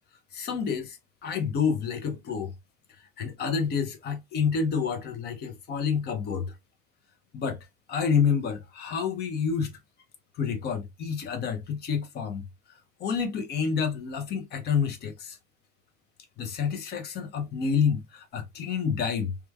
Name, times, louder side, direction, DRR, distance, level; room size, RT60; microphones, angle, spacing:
voice 1, 0.3-2.5 3.0-6.5 7.3-9.7 10.3-15.4 16.4-19.4, left 6 dB, 25° left, 0.5 m, -29 dB
3.0 x 2.2 x 2.2 m
supercardioid pair, 135°, 43 cm